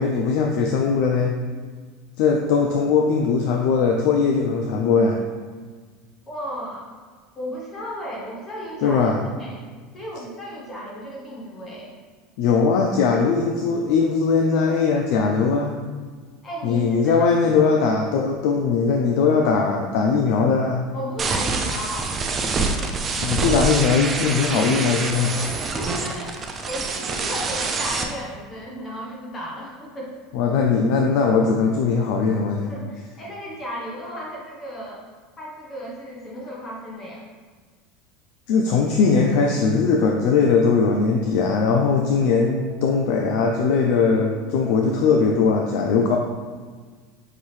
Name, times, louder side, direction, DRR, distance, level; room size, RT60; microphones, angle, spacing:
voice 1, 0.0-1.4 2.2-5.2 8.8-9.2 12.4-15.7 16.6-20.9 23.2-25.5 30.3-32.7 38.5-46.2, left 5 dB, 65° left, 2 dB, 0.4 m, -20 dB
voice 2, 6.3-6.8 7.4-9.1 9.4-9.7 9.9-12.0 16.4-17.3 20.9-22.2 25.4-30.1 32.7-35.1 35.4-37.2, equal, 25° left, -4 dB, 0.9 m, -34 dB
sound 1, 21.2-28.0, right 4 dB, 25° right, 0.4 m, -26 dB
5.6 x 2.7 x 3.2 m, 1.5 s
supercardioid pair, 130°, 0 cm